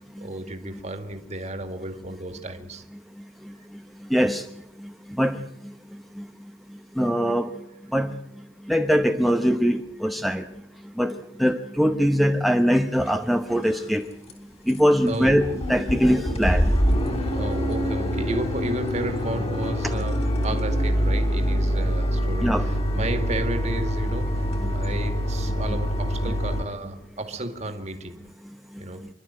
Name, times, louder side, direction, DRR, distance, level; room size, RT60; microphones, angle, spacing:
voice 1, 0.0-2.8 15.1-15.5 17.3-28.2 28.8-29.0, right 2 dB, 35° right, 2.2 m, -33 dB
voice 2, 4.1-4.4 5.2-5.4 7.0-7.5 7.9-8.1 8.7-10.4 11.0-11.1 11.4-14.0 14.7-16.7 22.4-22.7, equal, ahead, 0.9 m, -22 dB
sound 1, 13.0-13.1 13.6-14.0 14.3-14.4 14.7-14.8 15.1-26.6, equal, 30° left, 3.1 m, -25 dB
27.5 x 12.0 x 9.0 m
head